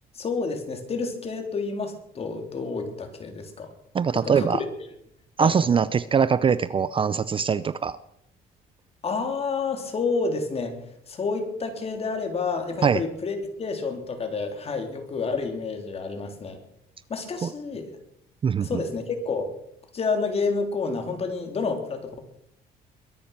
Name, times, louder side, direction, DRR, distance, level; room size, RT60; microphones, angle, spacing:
voice 1, 0.1-3.7 4.1-4.5 5.4-5.5 9.0-10.8 11.1-16.6 17.1-17.9 18.6-19.5 19.9-22.2, left 4 dB, 35° left, 5 dB, 3.5 m, -29 dB
voice 2, 3.9-4.6 5.4-8.0 12.8-13.0 17.4-17.5 18.4-18.8, right 6 dB, 30° right, 16 dB, 0.6 m, -22 dB
22.0 x 10.5 x 6.0 m, 0.75 s
cardioid pair, 110°, 17 cm